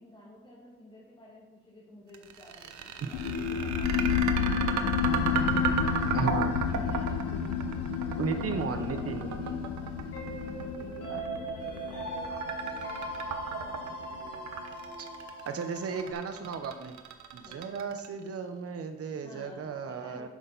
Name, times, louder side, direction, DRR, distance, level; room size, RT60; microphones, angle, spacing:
voice 1, 0.0-4.9 5.3-6.3 6.7-13.0 13.6-13.8 17.5-17.6 19.2-20.3, left 1 dB, 15° left, -7 dB, 2.4 m, -52 dB
sound 1, 2.1-18.3, right 7 dB, 70° right, 1.0 m, -34 dB
sound 2, 3.1-14.3, left 7 dB, 85° left, 0.7 m, -31 dB
sound 3, 5.0-16.0, right 2 dB, 50° left, 3.2 m, -41 dB
voice 2, 6.1-6.6 8.2-9.3 11.1-11.2 15.0-15.1 15.5-17.0 17.3-20.3, right 5 dB, 50° right, 7 dB, 1.1 m, -34 dB
9.7 x 6.5 x 4.1 m, 1.1 s
cardioid pair, 90°, 30 cm